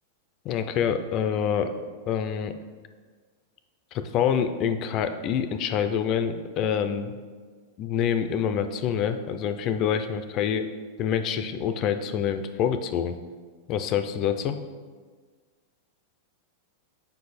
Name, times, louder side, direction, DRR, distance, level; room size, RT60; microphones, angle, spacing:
voice 1, 0.4-2.5 3.9-7.2 7.8-10.7 11.0-13.1 13.7-14.6, left 8 dB, 30° left, 9 dB, 0.4 m, -26 dB
6.6 x 5.1 x 4.1 m, 1.5 s
supercardioid pair, 170°, 0 cm